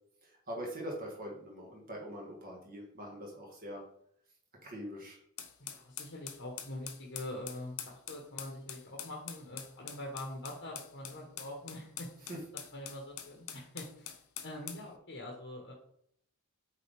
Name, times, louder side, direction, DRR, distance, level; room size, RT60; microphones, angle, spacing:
voice 1, 0.2-3.8 4.6-5.2 12.3-12.4, equal, 40° right, -2 dB, 1.6 m, -43 dB
sound 1, 5.4-14.9, left 9 dB, 85° left, 0.8 m, -45 dB
voice 2, 5.6-12.1 12.7-14.2 14.4-15.7, left 1 dB, 55° left, -1 dB, 1.2 m, -44 dB
8.2 x 3.8 x 3.4 m, 0.67 s
head